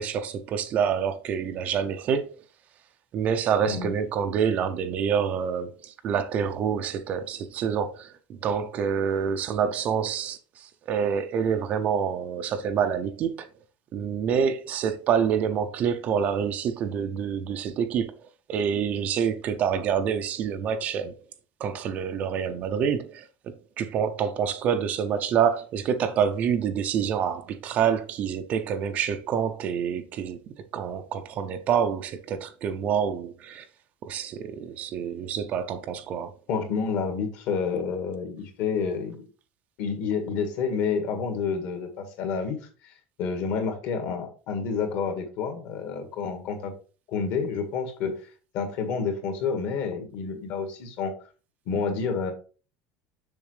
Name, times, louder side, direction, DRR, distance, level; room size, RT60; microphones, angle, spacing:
voice 1, 0.0-2.3 3.1-8.1 8.4-13.5 13.9-18.1 18.5-21.2 21.6-30.4 30.7-33.6 34.0-36.3, right 7 dB, 30° right, 0.5 m, -27 dB
voice 2, 36.5-39.3 39.8-42.6 42.8-42.9 43.2-46.7 47.1-48.2 48.5-51.1 51.7-52.3, left 5 dB, 50° left, 1.7 m, -29 dB
7.1 x 6.4 x 3.3 m
cardioid pair, 180°, 5 cm